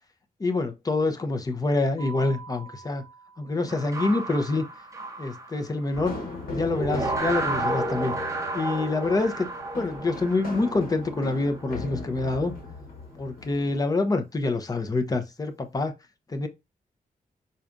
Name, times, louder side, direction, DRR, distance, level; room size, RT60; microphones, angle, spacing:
voice 1, 0.4-3.0 3.4-4.6 5.2-6.2 6.5-8.1 8.5-9.5 9.8-12.5 13.2-15.9 16.3-16.5, left 3 dB, 25° left, 0.8 m, -26 dB
Mallet percussion, 2.0-4.0, right 5 dB, 50° left, 2.0 m, -45 dB
sound 1, 3.7-6.4 6.7-11.8, right 2 dB, 20° right, 0.9 m, -32 dB
sound 2, 5.9-13.8, left 3 dB, 75° left, 1.4 m, -38 dB
4.8 x 4.1 x 2.6 m
wide cardioid pair, 140°, 15 cm